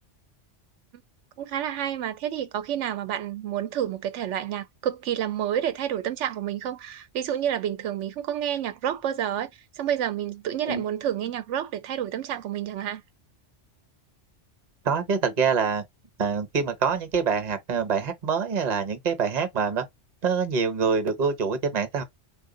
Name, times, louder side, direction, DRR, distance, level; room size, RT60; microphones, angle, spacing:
voice 1, 1.4-9.5 9.7-13.0, right 10 dB, 85° right, 0.9 m, -29 dB
voice 2, 14.8-15.8 16.2-19.8 20.2-22.0, right 6 dB, 40° right, 0.9 m, -25 dB
3.6 x 2.4 x 3.8 m
omnidirectional pair, 1.2 m